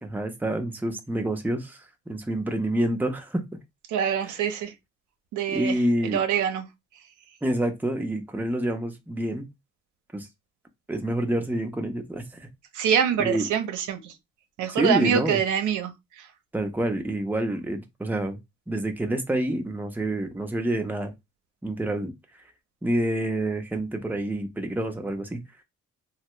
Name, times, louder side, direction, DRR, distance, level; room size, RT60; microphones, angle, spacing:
voice 1, 0.0-3.4 5.5-6.2 7.4-9.5 10.1-10.3 10.9-12.2 13.2-13.4 14.7-15.4 16.5-18.4 18.7-21.1 21.6-22.1 22.8-25.4, right 1 dB, 5° right, 0.8 m, -27 dB
voice 2, 3.9-4.7 5.3-5.8 6.0-6.6 12.7-14.1 14.6-16.3, right 8 dB, 80° right, 0.8 m, -25 dB
3.2 x 2.2 x 3.1 m
cardioid pair, 90°, 30 cm